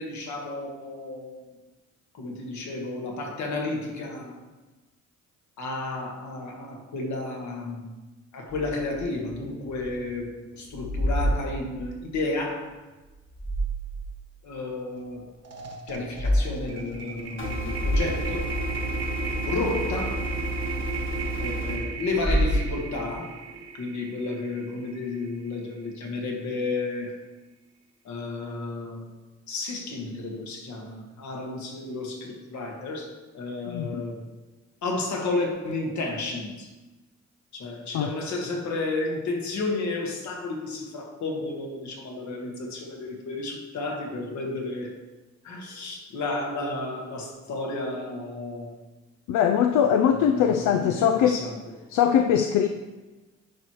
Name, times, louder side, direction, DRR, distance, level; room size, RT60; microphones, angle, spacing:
voice 1, 0.0-1.5 2.1-4.4 5.6-7.9 8.3-12.7 14.4-15.3 15.9-18.5 19.4-20.2 21.4-23.4 23.7-27.2 28.0-29.0 29.5-34.2 34.8-36.7 37.5-44.9 45.4-48.8 50.1-51.6, left 2 dB, 70° left, 1 dB, 1.6 m, -32 dB
sound 1, 8.5-10.2 10.4-12.2 13.1-14.2 14.6-14.7 16.0-16.4 16.8-17.0 17.4-17.5 17.7-19.1 22.0-23.2, equal, 25° left, 1.2 m, -28 dB
sound 2, 14.9-15.1 15.4-25.7, right 4 dB, 55° right, 1.3 m, -36 dB
sound 3, 17.4-21.8, right 1 dB, 40° left, 1.3 m, -31 dB
voice 2, 33.7-34.0 37.9-38.1 49.3-51.4 51.9-52.7, left 8 dB, 85° left, 6 dB, 0.5 m, -21 dB
10.5 x 4.7 x 3.0 m, 1.2 s
cardioid pair, 90°, 30 cm